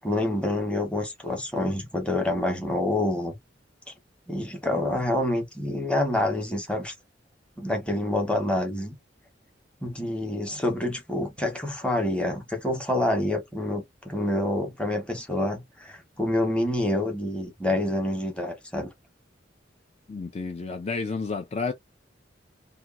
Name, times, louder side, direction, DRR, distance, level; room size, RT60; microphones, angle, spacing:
voice 1, 0.0-3.4 4.3-6.9 7.6-8.9 9.8-18.9, left 1 dB, 5° left, 0.9 m, -27 dB
voice 2, 20.1-21.7, left 4 dB, 35° left, 0.4 m, -31 dB
2.9 x 2.2 x 2.4 m
head